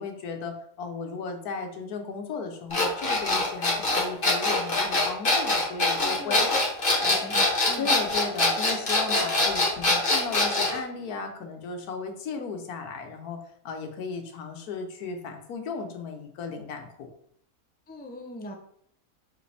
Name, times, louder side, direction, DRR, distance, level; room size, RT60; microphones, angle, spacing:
voice 1, 0.0-6.4 7.8-13.4 13.6-17.1, left 4 dB, 90° left, 5 dB, 1.4 m, -35 dB
sound 1, 2.7-10.8, left 2 dB, 40° left, 1.5 m, -23 dB
voice 2, 6.0-6.5 6.9-7.9 17.9-18.5, left 1 dB, 15° left, 3 dB, 0.4 m, -39 dB
5.7 x 5.1 x 3.4 m, 0.68 s
omnidirectional pair, 1.5 m